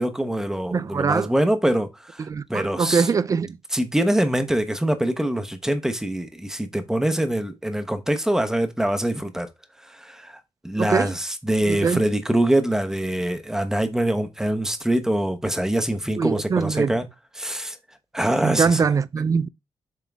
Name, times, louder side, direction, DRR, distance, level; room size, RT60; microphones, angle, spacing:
voice 1, 0.0-3.1 3.7-9.5 9.9-10.4 10.6-17.1 17.4-17.7 18.1-18.8, right 1 dB, 5° right, 0.9 m, -24 dB
voice 2, 0.7-1.3 2.2-3.6 10.8-11.1 11.7-12.0 16.2-17.0 18.4-19.5, right 5 dB, 35° right, 0.4 m, -22 dB
7.3 x 3.7 x 3.5 m
cardioid pair, 105°, 10 cm